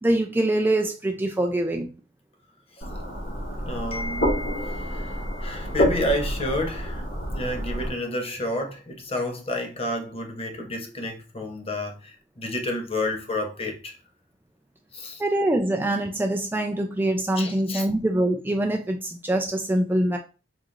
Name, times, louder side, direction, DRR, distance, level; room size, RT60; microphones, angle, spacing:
voice 1, 0.0-1.9 15.2-20.2, right 1 dB, 10° right, 0.4 m, -24 dB
sound 1, 2.8-7.9, equal, 90° left, 1.6 m, -28 dB
voice 2, 3.6-7.0 7.3-13.9 14.9-15.2 17.4-17.9, left 1 dB, 30° left, 0.8 m, -30 dB
5.2 x 2.8 x 2.5 m
head